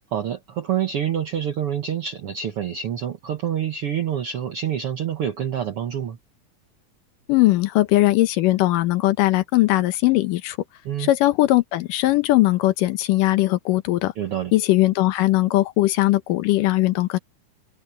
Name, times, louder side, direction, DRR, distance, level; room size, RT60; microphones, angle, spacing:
voice 1, 0.1-6.2 10.8-11.1 14.2-14.5, right 9 dB, 65° right, 1.4 m, -27 dB
voice 2, 7.3-10.6 11.0-14.1 14.5-17.2, left 17 dB, 75° left, 2.4 m, -19 dB
omnidirectional pair, 4.1 m